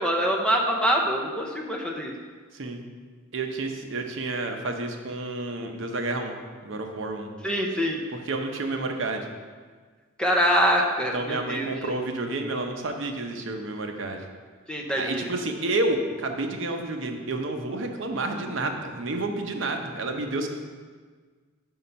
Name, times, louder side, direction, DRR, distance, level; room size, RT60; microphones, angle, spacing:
voice 1, 0.0-2.1 7.4-8.0 10.2-11.7 14.7-15.3, equal, 5° left, 0 dB, 0.6 m, -24 dB
voice 2, 2.5-2.8 3.3-6.4 6.6-7.3 8.1-9.3 11.1-14.2 14.9-20.5, right 2 dB, 65° right, 4 dB, 0.7 m, -30 dB
5.6 x 5.2 x 5.6 m, 1.5 s
head